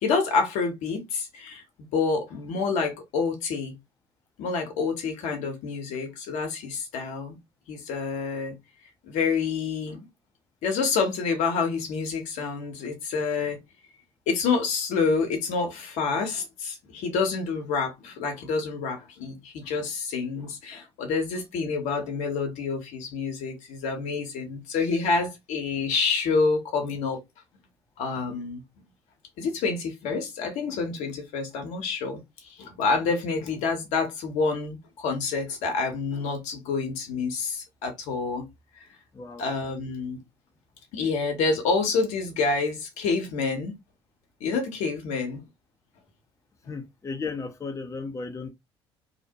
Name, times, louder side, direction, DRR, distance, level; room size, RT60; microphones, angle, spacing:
voice 1, 0.0-3.7 4.4-7.4 7.7-8.6 9.1-10.1 10.6-13.6 14.3-27.2 28.0-28.6 29.4-38.4 38.8-38.9 39.4-40.2 40.9-43.8 44.4-45.4, left 4 dB, 65° left, 1.0 m, -28 dB
voice 2, 46.7-48.5, left 4 dB, 20° left, 0.6 m, -34 dB
2.8 x 2.1 x 2.8 m
hypercardioid pair, 55°, 13 cm